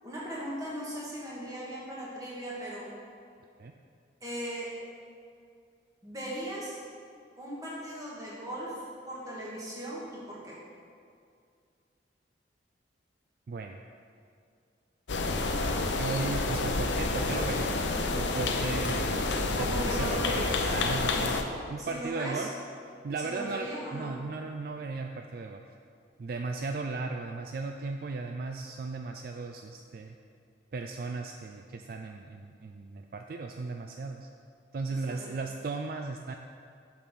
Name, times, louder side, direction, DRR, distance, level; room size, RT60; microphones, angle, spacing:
voice 1, 0.0-2.9 4.2-4.7 6.0-6.8 7.4-8.8 9.1-10.6 19.6-20.7 21.8-22.5 23.2-24.1 34.9-35.3, right 1 dB, 20° right, -7 dB, 1.7 m, -38 dB
voice 2, 13.5-13.8 15.9-17.8 18.1-19.3 19.6-20.4 20.7-21.4 21.7-22.5 23.0-25.7 26.2-30.2 30.7-34.3 34.7-36.3, right 3 dB, 50° right, 4 dB, 0.3 m, -36 dB
sound 1, 15.1-21.4, left 3 dB, 75° left, 0.6 m, -29 dB
7.2 x 5.3 x 6.0 m, 2.3 s
head